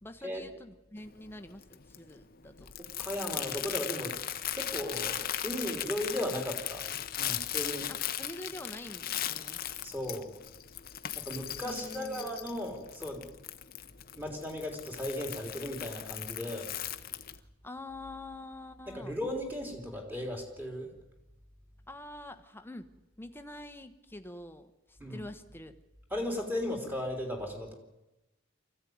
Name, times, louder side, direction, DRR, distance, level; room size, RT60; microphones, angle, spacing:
voice 1, 0.0-2.7 7.9-9.7 11.6-12.3 17.3-19.2 21.9-22.9 23.2-25.8, left 1 dB, 10° left, 8 dB, 1.3 m, -46 dB
Crumpling crinkling, 1.0-17.4, left 11 dB, 45° left, 0.9 m, -38 dB
voice 2, 3.0-4.2 4.5-6.9 7.2-7.9 9.8-10.3 11.2-13.2 14.1-16.7 18.9-20.9 25.0-25.2 26.1-27.7, left 1 dB, 10° right, 2 dB, 3.6 m, -36 dB
24.5 x 15.5 x 9.5 m, 0.99 s
head